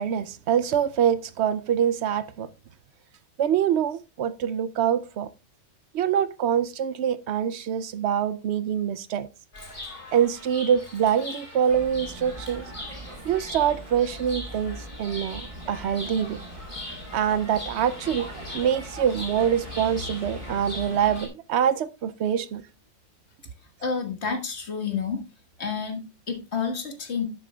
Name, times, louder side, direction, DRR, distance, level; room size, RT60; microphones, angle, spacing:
voice 1, 0.0-2.5 3.4-5.3 5.9-9.3 10.1-12.6 13.2-16.4 17.1-18.3 18.5-22.6, right 9 dB, 70° right, 0.8 m, -25 dB
Chirp tweet, 9.5-21.3, left 2 dB, 45° left, 3.6 m, -41 dB
sound 1, 11.7-21.2, right 1 dB, 30° right, 1.2 m, -41 dB
voice 2, 23.8-25.2 25.6-27.3, left 5 dB, 65° left, 1.8 m, -29 dB
12.5 x 6.8 x 2.3 m
omnidirectional pair, 1.2 m